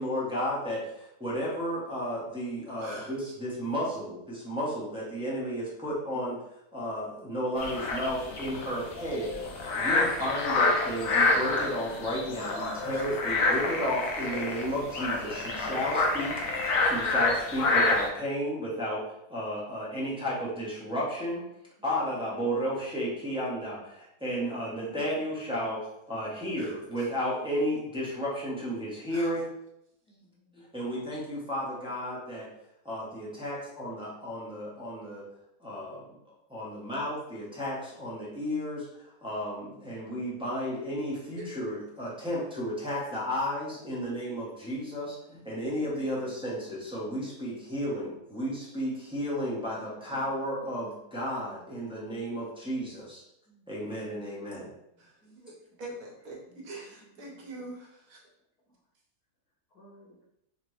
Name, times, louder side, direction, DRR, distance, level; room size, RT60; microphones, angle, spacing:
voice 1, 0.0-16.5 16.8-21.4 21.8-25.8 26.1-29.5 30.5-32.5 32.8-35.3 35.6-36.2 36.5-53.2 53.7-54.7 57.2-57.3, equal, 5° right, -6 dB, 0.7 m, -33 dB
voice 2, 2.8-3.1 12.9-13.1 26.6-26.7 29.1-29.3 41.4-41.5 55.0-58.2, right 2 dB, 65° right, -3 dB, 1.3 m, -44 dB
sound 1, 7.6-18.1, left 3 dB, 65° left, 1.0 m, -28 dB
voice 3, 30.1-30.7 53.5-53.7 55.2-55.4 56.5-56.6 56.9-57.0 59.7-60.2, equal, 85° left, -3 dB, 1.7 m, -58 dB
4.0 x 2.9 x 3.2 m, 0.82 s
omnidirectional pair, 1.7 m